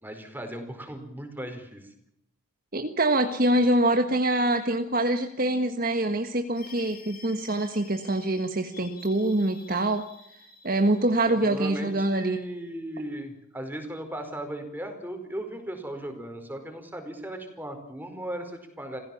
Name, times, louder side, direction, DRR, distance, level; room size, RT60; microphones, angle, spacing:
voice 1, 0.0-1.9 11.1-19.0, right 1 dB, 10° right, 5 dB, 4.8 m, -37 dB
voice 2, 2.7-10.0 10.6-12.4, right 1 dB, 45° right, 6 dB, 1.6 m, -25 dB
sound 1, 6.6-12.8, left 5 dB, 45° left, 6.7 m, -51 dB
26.5 x 16.0 x 7.2 m, 0.75 s
head